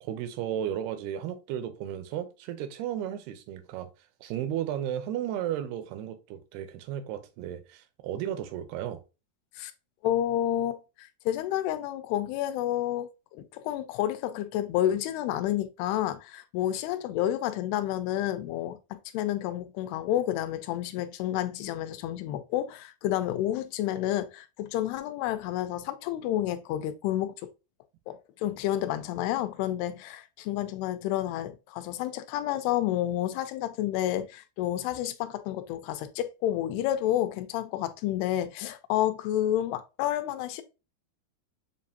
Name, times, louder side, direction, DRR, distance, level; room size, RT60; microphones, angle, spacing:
voice 1, 0.0-3.9 4.2-9.0, right 10 dB, 85° right, 2.6 m, -34 dB
voice 2, 10.0-27.3 28.1-40.6, left 12 dB, 90° left, 2.6 m, -30 dB
7.3 x 2.5 x 2.6 m
omnidirectional pair, 4.5 m